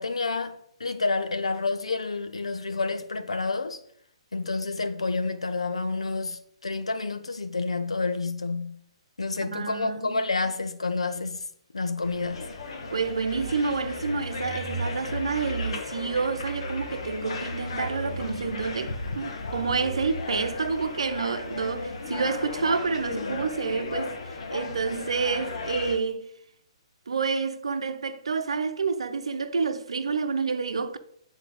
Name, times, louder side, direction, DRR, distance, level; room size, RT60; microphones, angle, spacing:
voice 1, 0.0-3.8 4.3-8.8 9.2-11.4 11.7-12.4, left 3 dB, 80° left, 0.8 m, -29 dB
voice 2, 9.4-10.2 12.9-26.3 27.1-31.0, right 5 dB, 70° right, 0.8 m, -29 dB
sound 1, 12.0-26.0, left 2 dB, 65° left, 1.2 m, -34 dB
9.2 x 4.1 x 3.8 m
figure-of-eight pair, 130°, 3 cm